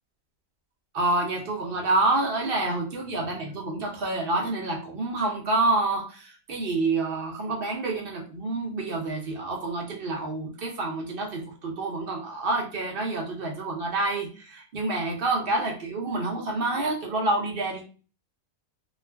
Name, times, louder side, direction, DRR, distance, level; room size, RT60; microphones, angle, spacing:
voice 1, 0.9-17.8, right 2 dB, 55° right, 0 dB, 0.7 m, -28 dB
2.4 x 2.3 x 3.3 m, 0.36 s
omnidirectional pair, 1.5 m